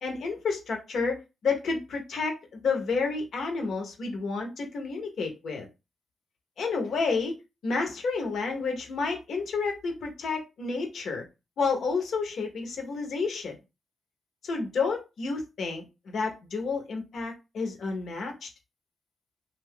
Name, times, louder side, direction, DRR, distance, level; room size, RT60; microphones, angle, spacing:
voice 1, 0.0-5.7 6.6-7.3 7.6-11.2 11.6-13.5 14.4-18.5, left 4 dB, 70° left, 3 dB, 1.0 m, -30 dB
2.4 x 2.3 x 3.6 m, 0.26 s
supercardioid pair, 40°, 0 cm